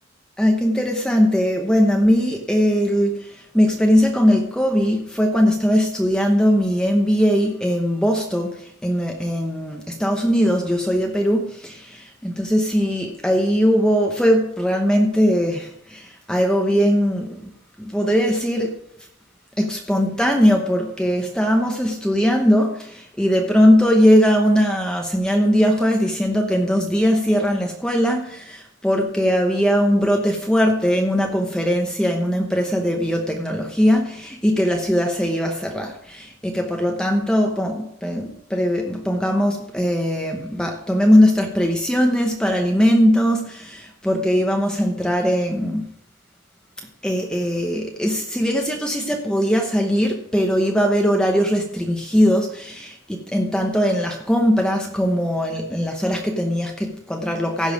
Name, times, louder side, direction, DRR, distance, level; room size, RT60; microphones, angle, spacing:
voice 1, 0.4-17.5 17.8-18.8 19.6-45.9 47.0-57.7, equal, 5° left, 2 dB, 0.9 m, -20 dB
16.0 x 5.6 x 5.1 m, 0.73 s
head